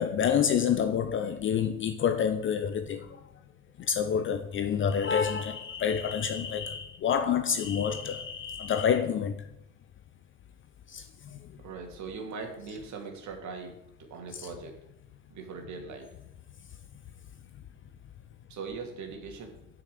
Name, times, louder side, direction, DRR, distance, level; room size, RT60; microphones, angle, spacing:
voice 1, 0.0-3.1 3.8-9.4 10.9-11.0 14.3-14.5, left 7 dB, 25° left, 0.8 m, -28 dB
voice 2, 11.6-13.8 14.1-14.8 15.3-16.1 18.5-19.5, right 4 dB, 40° right, 2.9 m, -40 dB
9.0 x 6.6 x 7.7 m
figure-of-eight pair, 75°, 46 cm